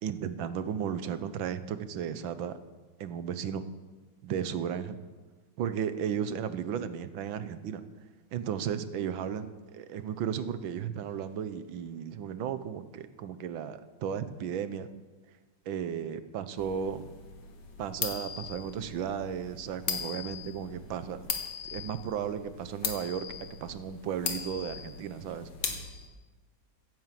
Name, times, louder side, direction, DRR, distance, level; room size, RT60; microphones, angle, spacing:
voice 1, 0.0-2.6 3.0-3.6 4.2-5.0 5.6-7.8 8.3-14.9 15.7-17.0 17.8-21.2 21.6-25.8, right 8 dB, 85° right, 12 dB, 1.7 m, -34 dB
sound 1, 16.6-26.1, left 6 dB, 65° left, 2.0 m, -39 dB
16.0 x 9.3 x 7.5 m, 1.3 s
omnidirectional pair, 2.1 m